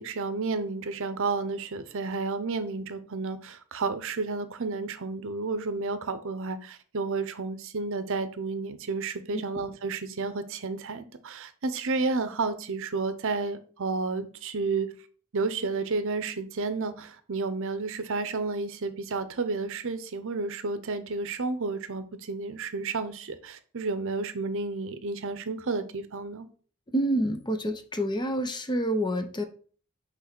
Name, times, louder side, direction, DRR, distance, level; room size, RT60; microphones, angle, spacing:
voice 1, 0.0-14.9 15.3-26.5, right 3 dB, 60° right, 0.7 m, -31 dB
voice 2, 26.9-29.4, right 1 dB, 20° left, 0.7 m, -27 dB
6.2 x 3.3 x 5.9 m
head